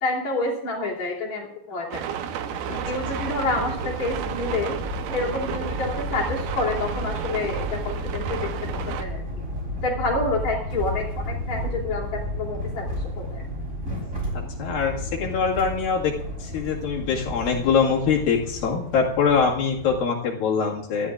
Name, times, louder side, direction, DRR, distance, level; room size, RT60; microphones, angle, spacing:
voice 1, 0.0-2.0 2.9-4.8 5.1-9.2 9.8-12.9 13.2-13.4, left 2 dB, 50° left, -3 dB, 4.3 m, -28 dB
dakraam regen II, 1.9-9.0, right 8 dB, 70° right, 2.4 m, -32 dB
sound 1, 2.7-20.0, equal, 20° right, 3.8 m, -33 dB
voice 2, 14.3-16.1 16.4-21.1, left 6 dB, 80° left, -2 dB, 3.7 m, -23 dB
25.5 x 13.0 x 2.5 m, 0.70 s
omnidirectional pair, 4.1 m